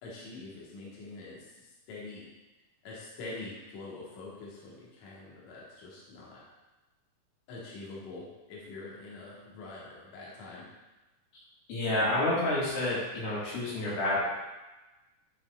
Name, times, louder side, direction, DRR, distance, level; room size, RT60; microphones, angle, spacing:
voice 1, 0.0-2.3 2.8-6.4 7.5-10.7, left 3 dB, 60° left, -5 dB, 2.3 m, -45 dB
voice 2, 11.7-14.2, left 1 dB, 85° left, -7 dB, 3.5 m, -29 dB
10.5 x 4.1 x 2.3 m, 1.1 s
omnidirectional pair, 4.1 m